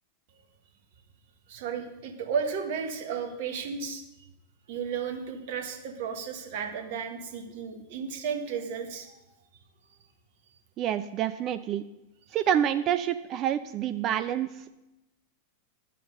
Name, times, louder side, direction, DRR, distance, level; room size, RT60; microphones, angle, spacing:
voice 1, 1.5-4.0 4.7-9.2, right 6 dB, 50° right, 5 dB, 1.5 m, -33 dB
voice 2, 10.8-11.8 12.3-14.7, right 10 dB, 35° right, 12 dB, 0.4 m, -28 dB
10.5 x 7.5 x 5.4 m, 0.95 s
figure-of-eight pair, 90°, 0 cm